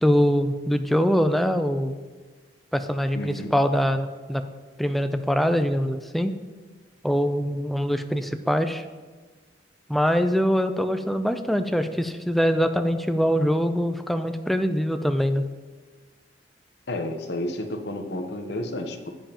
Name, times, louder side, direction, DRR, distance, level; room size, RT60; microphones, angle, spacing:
voice 1, 0.0-2.0 2.7-4.4 4.8-6.4 7.0-8.8 9.9-15.4, equal, ahead, 8 dB, 0.4 m, -23 dB
voice 2, 3.1-3.5 16.9-19.1, left 1 dB, 60° left, 5 dB, 0.9 m, -31 dB
10.0 x 9.1 x 2.9 m, 1.4 s
head